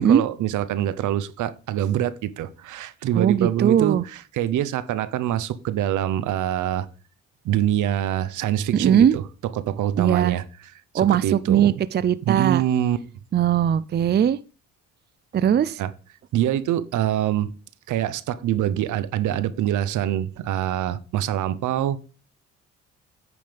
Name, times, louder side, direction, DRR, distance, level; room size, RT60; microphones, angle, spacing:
voice 1, 0.0-6.9 7.4-10.4 10.9-11.7 12.3-13.0 15.8-15.9 16.3-17.5 17.9-22.0, right 11 dB, 80° right, 0.8 m, -25 dB
voice 2, 3.2-4.0 8.8-9.2 10.0-10.4 10.9-12.6 13.3-14.4 15.3-15.8, right 9 dB, 35° right, 0.5 m, -19 dB
9.5 x 5.2 x 5.2 m
cardioid pair, 90°, 30 cm